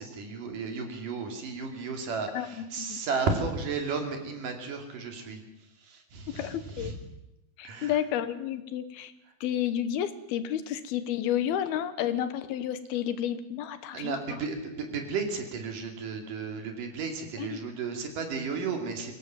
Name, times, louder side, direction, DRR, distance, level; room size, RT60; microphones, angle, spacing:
voice 1, 0.0-5.4 5.8-7.0 7.6-8.0 13.9-19.1, right 4 dB, 60° right, 4 dB, 4.1 m, -33 dB
voice 2, 2.3-3.0 6.3-6.9 7.6-9.1 9.4-14.4 17.4-17.6, left 10 dB, 80° left, 12 dB, 3.0 m, -31 dB
23.5 x 17.0 x 7.6 m, 0.89 s
omnidirectional pair, 4.5 m